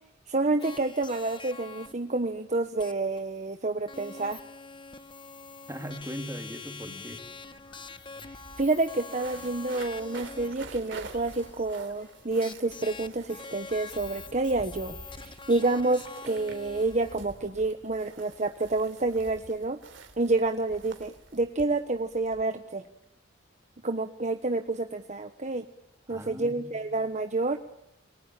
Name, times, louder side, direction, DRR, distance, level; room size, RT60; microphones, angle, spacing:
voice 1, 0.3-4.4 8.2-19.8 20.2-22.9 23.8-25.7 26.1-27.6, right 2 dB, 40° right, 7 dB, 1.2 m, -29 dB
sound 1, 0.6-1.9 2.8-2.9 3.2-3.3 3.9-17.1, left 4 dB, 25° left, 1.2 m, -45 dB
voice 2, 5.7-7.2 26.1-27.0, equal, 15° right, 5 dB, 3.3 m, -39 dB
Spectral Fragment of Speech, 6.6-13.4, left 1 dB, 75° left, 4.7 m, -55 dB
sound 2, 7.7-7.8 8.0-22.4, right 3 dB, 70° right, 3.4 m, -48 dB
28.5 x 21.5 x 8.9 m, 0.81 s
head